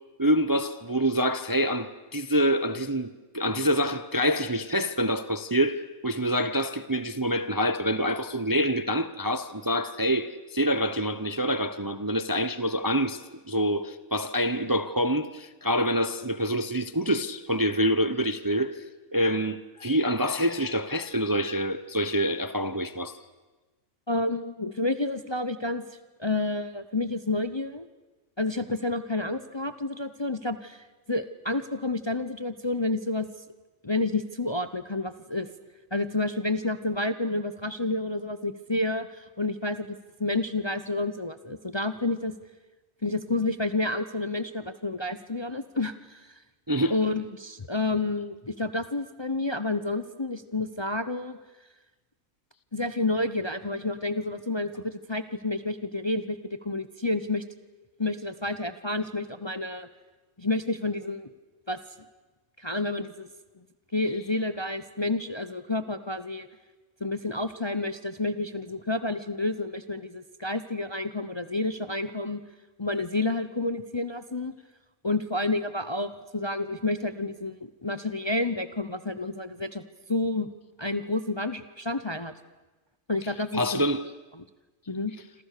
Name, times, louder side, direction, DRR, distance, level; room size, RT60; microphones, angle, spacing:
voice 1, 0.2-18.8 19.1-23.2 46.7-46.9 83.5-84.0, equal, 20° right, 0.7 m, -26 dB
voice 2, 24.1-25.8 26.2-27.9 28.4-33.3 33.8-35.5 35.9-42.3 43.0-46.3 46.9-51.4 52.7-57.4 58.0-59.9 60.4-61.3 61.7-61.8 62.6-63.3 63.9-66.5 67.0-72.4 72.8-74.5 75.0-79.8 80.1-80.5 80.8-82.3 83.1-83.8 84.3-84.4 84.9-85.1, left 2 dB, 25° left, 0.7 m, -30 dB
27.5 x 26.5 x 6.7 m
omnidirectional pair, 1.4 m